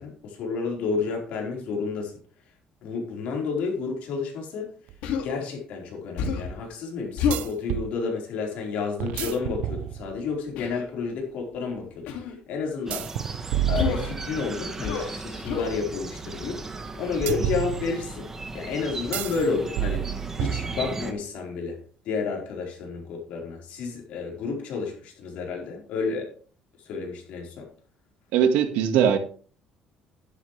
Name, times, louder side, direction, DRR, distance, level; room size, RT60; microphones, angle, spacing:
voice 1, 0.0-2.1 2.8-4.7 5.2-13.2 13.7-16.6 17.0-18.3 18.5-21.8 22.0-26.3 26.8-27.7, left 4 dB, 65° left, 0 dB, 4.5 m, -31 dB
sound 1, 4.9-5.0 7.3-7.9 9.0-10.3 12.9-14.6 17.3-18.3 19.1-19.4 19.8-21.1, right 12 dB, 70° right, 0.7 m, -30 dB
Human voice, 5.0-5.3 6.2-6.5 7.2-7.5 9.1-9.3 10.5-10.9 12.1-12.3 13.7-14.1 14.8-15.1 15.4-15.7, left 6 dB, 85° left, 2.4 m, -28 dB
sound 2, 12.9-21.1, right 3 dB, 15° right, 1.3 m, -37 dB
voice 2, 28.3-29.2, right 8 dB, 90° right, 7 dB, 1.7 m, -20 dB
11.5 x 11.0 x 3.3 m, 0.42 s
cardioid pair, 150°, 2 cm